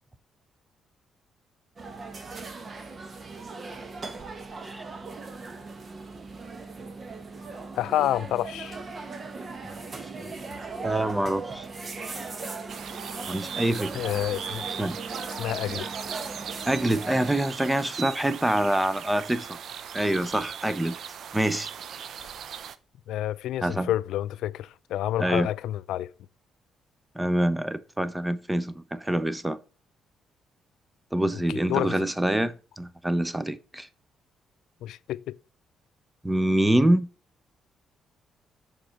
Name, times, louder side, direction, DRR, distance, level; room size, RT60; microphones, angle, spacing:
sound 1, 1.8-17.4, right 3 dB, 40° right, 1.1 m, -38 dB
voice 1, 7.8-8.8 13.9-14.7 15.4-15.9 23.1-26.1 31.5-32.0 34.8-35.4, left 13 dB, 85° left, 0.3 m, -29 dB
voice 2, 10.8-11.7 13.3-14.0 14.8-15.0 16.6-19.6 19.9-21.0 21.3-21.7 23.6-23.9 25.2-25.5 27.1-29.6 31.1-33.9 36.2-37.1, right 1 dB, 10° right, 0.7 m, -25 dB
sound 2, 12.7-22.8, right 8 dB, 65° right, 0.6 m, -39 dB
6.4 x 4.4 x 5.7 m
cardioid pair, 90°, 0 cm